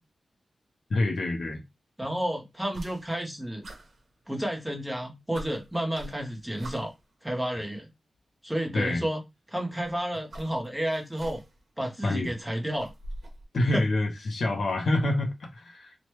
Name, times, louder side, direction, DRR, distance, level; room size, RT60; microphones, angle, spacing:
voice 1, 0.9-1.6 8.7-9.1 12.0-12.3 13.5-15.9, left 2 dB, 65° left, 0.6 m, -27 dB
voice 2, 2.0-3.6 4.3-6.9 7.2-7.9 8.4-9.2 9.5-11.4 11.8-12.9 13.7-13.8, right 1 dB, 5° right, 0.8 m, -31 dB
sound 1, 2.7-3.3 3.6-4.7 5.0-5.1 5.3-7.1 8.1-8.2 9.6-11.7 12.0-13.4, right 1 dB, 60° right, 1.0 m, -44 dB
3.0 x 2.2 x 3.0 m
wide cardioid pair, 140°, 0 cm